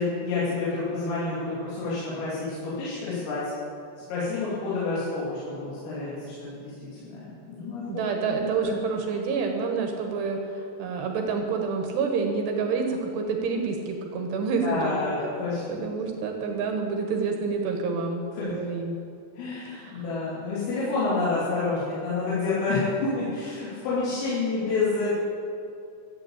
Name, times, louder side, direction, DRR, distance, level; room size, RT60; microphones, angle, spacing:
voice 1, 0.0-3.4 4.1-6.7 7.0-7.9 8.3-8.7 14.6-15.8 18.4-18.5 19.4-25.1, left 3 dB, 75° left, -10 dB, 5.6 m, -29 dB
voice 2, 7.9-15.0 15.7-19.0 19.7-20.0, right 4 dB, 70° right, 3 dB, 2.9 m, -28 dB
14.5 x 8.0 x 8.5 m, 2.6 s
omnidirectional pair, 5.9 m